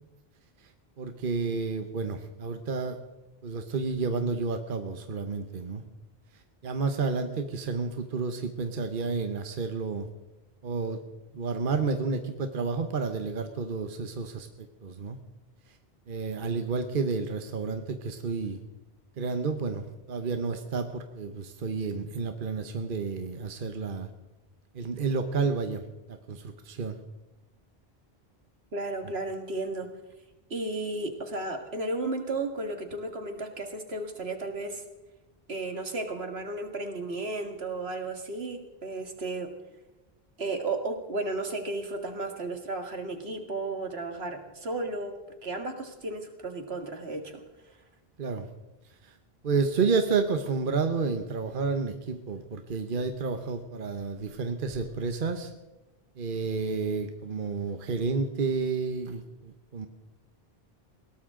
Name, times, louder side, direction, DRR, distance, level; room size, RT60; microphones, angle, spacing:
voice 1, 1.0-3.0 3.4-5.8 6.6-10.1 10.6-11.0 11.3-14.5 14.8-15.2 15.7-15.8 16.1-18.6 19.2-24.1 24.7-27.0 48.2-48.5 49.0-49.2 49.4-55.5 56.2-59.9, right 4 dB, 55° right, 7 dB, 1.2 m, -30 dB
voice 2, 28.7-29.9 30.5-34.8 35.5-39.5 40.4-45.2 45.4-47.4, right 2 dB, 85° right, 5 dB, 2.2 m, -34 dB
21.0 x 17.5 x 3.8 m, 1.1 s
omnidirectional pair, 1.0 m